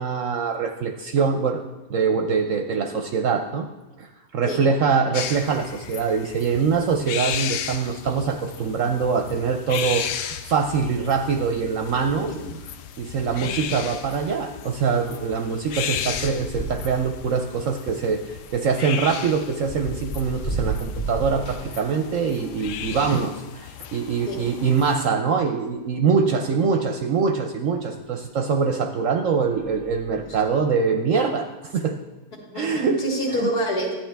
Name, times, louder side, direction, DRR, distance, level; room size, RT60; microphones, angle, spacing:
voice 1, 0.0-1.6 1.9-3.7 4.0-4.1 4.3-12.3 13.0-18.2 18.5-32.0 32.5-33.0 33.4-33.5, right 5 dB, 65° right, 5 dB, 0.8 m, -23 dB
sound 1, 5.1-25.1, left 9 dB, 85° left, 1.2 m, -35 dB
sound 2, 12.7-12.8 13.1-13.3 13.5-23.0 23.7-25.1 25.8-25.9 26.1-26.2 27.9-28.0 28.6-28.9 29.3-30.6, right 2 dB, 30° left, 1.6 m, -36 dB
voice 2, 13.2-13.5 24.3-24.5 30.2-30.4 32.4-33.9, equal, 70° left, -1 dB, 2.3 m, -28 dB
11.5 x 9.3 x 3.4 m, 1.1 s
omnidirectional pair, 1.8 m